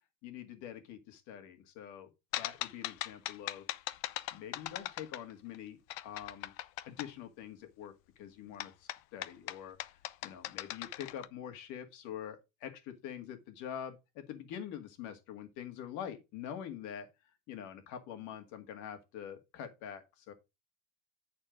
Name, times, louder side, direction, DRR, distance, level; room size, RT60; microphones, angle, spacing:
voice 1, 0.2-2.1 2.4-3.6 4.3-6.5 6.8-17.1 17.5-20.3, left 9 dB, 50° left, 2.0 m, -45 dB
sound 1, 2.3-5.6 5.9-7.1 8.6-11.3, left 15 dB, 90° left, 0.8 m, -40 dB
9.8 x 4.4 x 5.1 m
cardioid pair, 165°, 38 cm